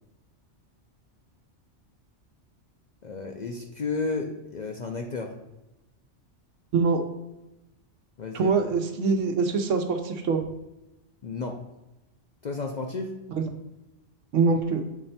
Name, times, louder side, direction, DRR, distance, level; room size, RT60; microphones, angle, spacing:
voice 1, 3.0-5.3 8.2-8.5 11.2-11.6 12.4-13.1, left 4 dB, 55° left, 2 dB, 0.5 m, -32 dB
voice 2, 8.3-10.4 13.4-13.5 14.3-14.8, right 4 dB, 85° right, 6 dB, 1.1 m, -24 dB
7.2 x 3.3 x 4.2 m, 0.95 s
omnidirectional pair, 1.3 m